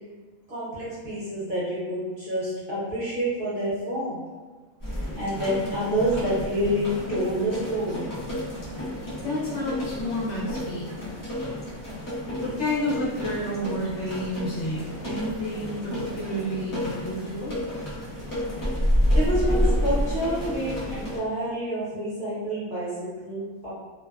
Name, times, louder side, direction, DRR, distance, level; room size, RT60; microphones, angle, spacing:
voice 1, 0.5-4.2 4.9-8.1 19.1-23.7, equal, 45° right, -11 dB, 0.8 m, -28 dB
sound 1, 4.8-21.2, equal, 25° left, 0.4 m, -30 dB
voice 2, 9.2-10.9 12.4-17.5, left 1 dB, 60° left, -8 dB, 1.0 m, -30 dB
2.6 x 2.2 x 2.3 m, 1.4 s
omnidirectional pair, 1.4 m